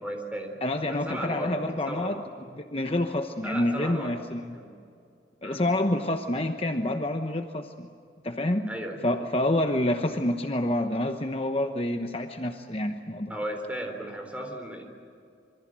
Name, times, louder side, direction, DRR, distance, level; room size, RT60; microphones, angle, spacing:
voice 1, 0.0-1.5 1.8-2.3 3.4-4.1 4.5-4.7 5.4-5.6 8.7-9.0 13.3-14.8, right 1 dB, 5° right, 3 dB, 3.8 m, -35 dB
voice 2, 0.6-2.2 2.5-4.6 5.4-7.9 8.2-8.7 9.0-13.4, left 1 dB, 30° left, 5 dB, 1.0 m, -28 dB
26.5 x 24.5 x 7.6 m, 2.5 s
head